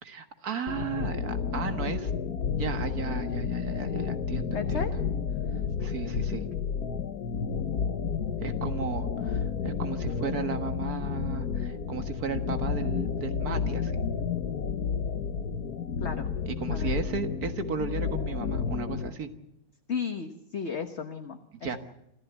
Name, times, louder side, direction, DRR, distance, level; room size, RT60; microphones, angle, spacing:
voice 1, 0.0-5.0 5.8-6.5 8.4-14.0 16.5-19.3 21.5-21.8, right 5 dB, 55° right, 8 dB, 2.0 m, -35 dB
sound 1, 0.7-19.1, left 6 dB, 55° left, 1.5 m, -31 dB
voice 2, 4.5-4.9 16.0-16.3 16.7-16.9 19.9-21.8, left 6 dB, 40° left, 6 dB, 1.3 m, -34 dB
26.5 x 14.5 x 8.1 m, 0.85 s
omnidirectional pair, 2.1 m